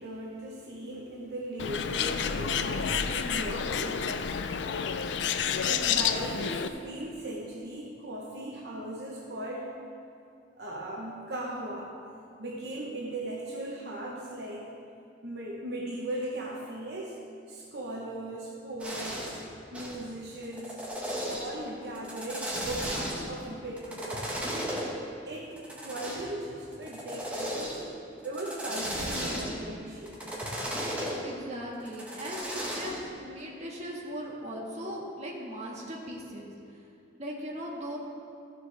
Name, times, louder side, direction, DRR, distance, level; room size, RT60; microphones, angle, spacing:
voice 1, 0.0-4.1 5.6-9.8 10.6-11.9 12.4-14.7 15.2-17.2 17.5-20.8 21.3-24.8 25.2-27.8 28.2-30.2, right 1 dB, 65° right, -3 dB, 1.0 m, -38 dB
Bird, 1.6-6.7, left 7 dB, 80° left, 0.4 m, -29 dB
sound 1, 18.8-19.4 19.7-20.0 20.4-21.5 21.9-23.3 23.8-24.9 25.6-26.3 26.7-27.8 28.2-29.6 30.1-31.2 31.8-33.0, equal, 10° right, 1.4 m, -35 dB
voice 2, 31.2-36.5 37.2-38.0, equal, 40° right, -3 dB, 1.6 m, -38 dB
14.5 x 7.3 x 3.4 m, 2.4 s
head